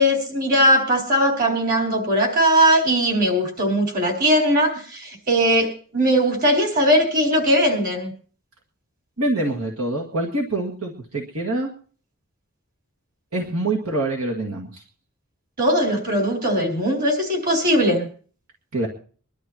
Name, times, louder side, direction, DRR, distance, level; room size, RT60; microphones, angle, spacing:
voice 1, 0.0-8.1 15.6-18.1, equal, 40° right, 3 dB, 4.1 m, -19 dB
voice 2, 9.2-11.7 13.3-14.8 18.7-18.9, right 2 dB, 75° right, 0 dB, 1.9 m, -25 dB
24.5 x 12.0 x 2.9 m, 0.41 s
head